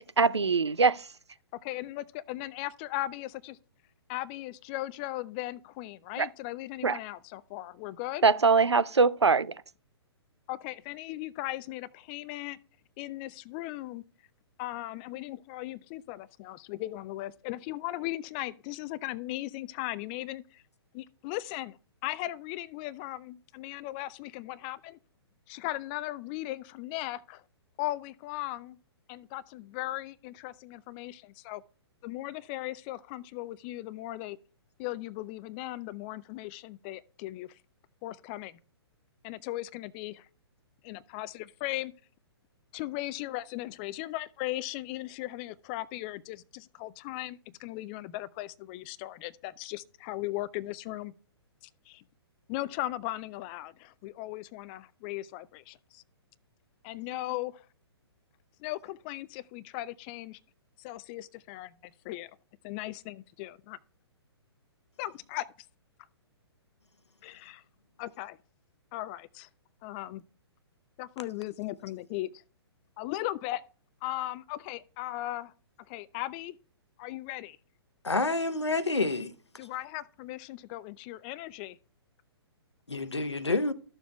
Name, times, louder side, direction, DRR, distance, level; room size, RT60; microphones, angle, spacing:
voice 1, 0.2-1.0 6.2-6.3 6.8-7.0 8.2-9.5, right 4 dB, 80° right, 0.5 m, -22 dB
voice 2, 1.5-3.6 4.1-8.2 10.5-12.6 13.0-14.0 14.6-20.6 20.9-21.8 22.0-25.0 25.5-27.4 27.8-28.8 29.1-31.6 32.0-34.4 34.8-37.6 38.0-38.6 39.2-40.3 40.8-41.9 42.7-51.1 51.9-52.0 52.5-56.0 56.8-57.7 58.6-60.4 60.8-62.3 62.6-63.8 65.0-65.5 67.2-67.6 68.0-68.4 68.9-69.5 69.8-70.2 71.0-72.3 73.0-73.6 74.0-75.5 75.9-76.6 77.0-77.6 79.6-81.8, left 16 dB, 20° left, 0.3 m, -37 dB
voice 3, 78.0-79.3 82.9-83.7, left 3 dB, 80° left, 0.9 m, -28 dB
13.5 x 6.9 x 2.3 m
figure-of-eight pair, 120°, 14 cm